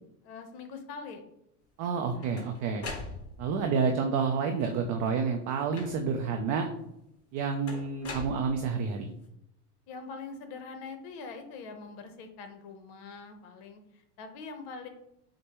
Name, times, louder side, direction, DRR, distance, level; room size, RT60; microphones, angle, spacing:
voice 1, 0.2-1.2 9.9-14.9, left 4 dB, 55° left, 7 dB, 0.9 m, -43 dB
sound 1, 1.8-3.6 4.5-5.0 5.7-6.3 7.7-8.9, left 3 dB, 30° left, 1.1 m, -42 dB
voice 2, 1.8-2.9 3.4-6.7 7.3-9.1, right 5 dB, 40° right, 4 dB, 0.5 m, -29 dB
6.3 x 2.2 x 3.0 m, 0.79 s
supercardioid pair, 110°, 46 cm